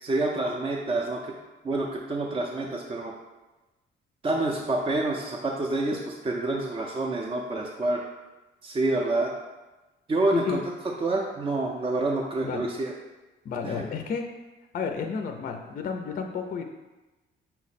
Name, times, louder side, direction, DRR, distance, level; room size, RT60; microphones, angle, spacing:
voice 1, 0.0-1.3 1.6-3.1 4.2-8.0 8.6-9.3 10.1-12.9 13.6-13.8, right 2 dB, 25° right, -1 dB, 0.4 m, -28 dB
voice 2, 13.5-14.2 14.7-16.6, left 6 dB, 45° left, 4 dB, 0.4 m, -31 dB
5.5 x 2.0 x 4.1 m, 1.1 s
cardioid pair, 90°, 20 cm